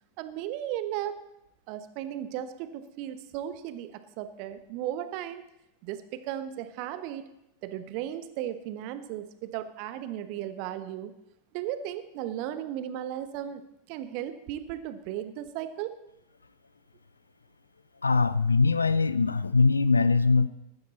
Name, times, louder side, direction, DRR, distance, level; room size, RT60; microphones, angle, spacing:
voice 1, 0.2-1.2 1.7-5.4 5.8-7.3 7.6-11.1 11.5-13.6 13.9-16.0, right 11 dB, 45° right, 12 dB, 1.0 m, -35 dB
voice 2, 18.0-20.5, left 4 dB, 75° left, 16 dB, 0.5 m, -22 dB
15.0 x 12.0 x 4.1 m, 0.85 s
figure-of-eight pair, 90°, 0 cm